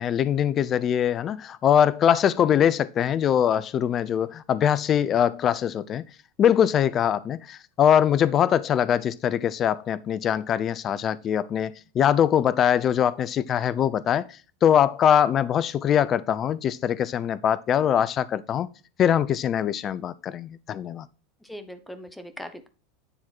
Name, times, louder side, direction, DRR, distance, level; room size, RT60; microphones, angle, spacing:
voice 1, 0.0-6.1 6.4-14.3 14.6-18.7 19.0-21.1, left 9 dB, 35° left, 0.5 m, -22 dB
voice 2, 2.3-2.7 21.4-22.7, equal, 5° left, 1.2 m, -40 dB
9.8 x 3.7 x 4.6 m
hypercardioid pair, 95°, 0 cm